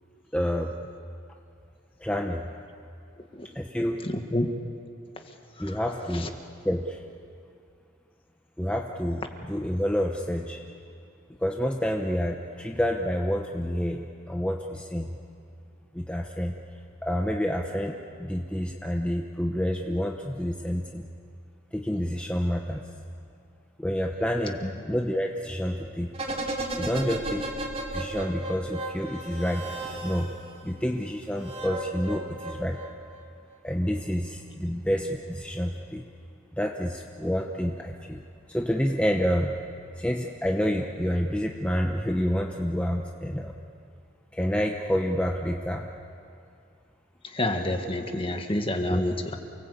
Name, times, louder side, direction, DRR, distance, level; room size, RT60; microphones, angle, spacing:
voice 1, 0.3-0.7 2.0-2.5 3.5-4.0 5.6-6.3 6.6-7.0 8.6-10.6 11.4-15.1 15.9-16.6 17.0-21.1 21.7-22.8 23.8-24.6 24.9-26.1 26.7-27.5 27.9-29.7 30.0-30.3 30.6-32.8 33.6-36.0 36.5-38.2 38.5-39.5 40.0-43.5 44.3-45.9 48.9-49.0, equal, 5° left, 1 dB, 0.9 m, -28 dB
voice 2, 3.2-3.5 4.0-4.5 5.2-5.8 6.1-6.3 24.6-24.7 47.2-49.4, left 1 dB, 25° left, 5 dB, 1.7 m, -29 dB
sound 1, 26.1-30.6 31.4-33.2 33.5-33.6, right 2 dB, 30° right, 2.9 m, -34 dB
29.0 x 19.0 x 8.5 m, 2.5 s
head